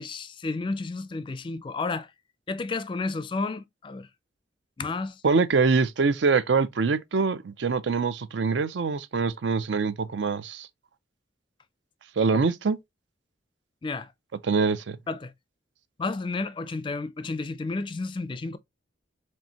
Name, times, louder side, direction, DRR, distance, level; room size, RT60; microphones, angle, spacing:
voice 1, 0.0-2.1 2.5-4.1 4.8-5.2 12.3-12.4 13.8-14.1 15.1-15.3 16.0-18.6, left 3 dB, 25° left, 0.3 m, -31 dB
voice 2, 5.2-10.7 12.2-12.8 14.4-15.0, right 4 dB, 75° right, 0.5 m, -24 dB
4.4 x 3.4 x 2.8 m
head